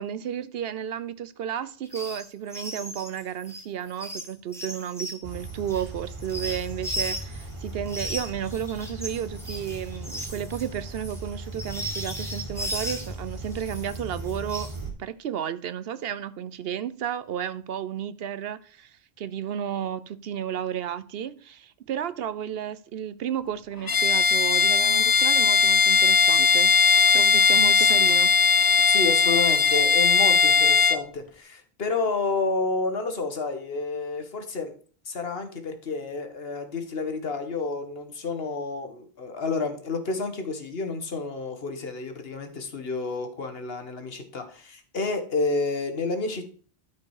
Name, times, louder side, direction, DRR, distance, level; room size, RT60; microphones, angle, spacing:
voice 1, 0.0-14.7 15.0-26.7 27.1-28.8, right 9 dB, 70° right, 0.8 m, -33 dB
sound 1, 1.9-2.2 2.5-7.5 7.9-13.1 13.5-14.8, equal, 5° left, 1.6 m, -36 dB
sound 2, 5.2-14.9, right 2 dB, 20° right, 2.4 m, -38 dB
Bowed string instrument, 23.9-31.0, left 5 dB, 35° left, 0.3 m, -19 dB
voice 2, 28.8-34.7 35.0-46.5, left 3 dB, 70° left, 1.6 m, -30 dB
12.5 x 4.6 x 4.8 m
omnidirectional pair, 1.1 m